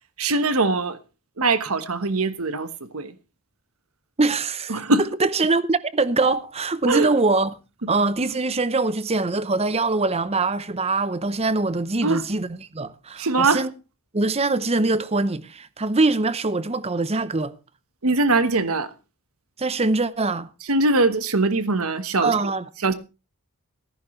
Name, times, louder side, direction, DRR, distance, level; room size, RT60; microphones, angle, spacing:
voice 1, 0.2-1.0 1.4-3.1 4.7-5.1 6.8-7.1 7.8-7.9 12.0-12.2 13.2-13.7 18.0-18.9 20.7-22.3 22.8-22.9, right 3 dB, 75° right, 1.3 m, -22 dB
voice 2, 4.2-4.8 5.2-7.6 7.9-13.7 14.1-17.6 19.6-20.5 22.2-22.7, right 3 dB, 30° right, 0.8 m, -23 dB
15.0 x 13.5 x 3.2 m
head